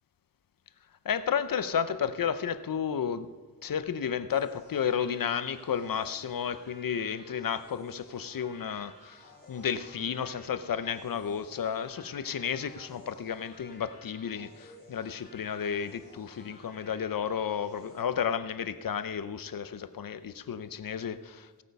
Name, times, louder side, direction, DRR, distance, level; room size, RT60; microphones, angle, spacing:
voice 1, 1.0-3.3 3.6-9.2 9.5-21.6, left 7 dB, 70° left, 13 dB, 0.7 m, -32 dB
sound 1, 4.3-18.0, left 1 dB, 25° left, 3.4 m, -54 dB
16.5 x 8.3 x 5.3 m, 1.4 s
wide cardioid pair, 105°, 35 cm